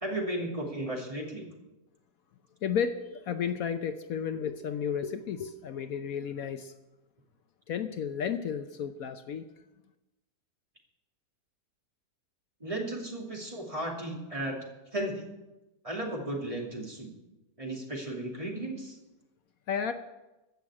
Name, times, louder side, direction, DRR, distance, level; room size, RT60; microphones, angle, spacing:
voice 1, 0.0-1.5 12.6-14.6 14.9-15.3 15.8-17.1 17.6-19.0, right 1 dB, 20° right, -1 dB, 2.7 m, -35 dB
voice 2, 2.6-6.7 7.7-9.4 19.7-19.9, left 7 dB, 70° left, 8 dB, 1.1 m, -32 dB
15.5 x 6.3 x 9.6 m, 1.0 s
omnidirectional pair, 1.6 m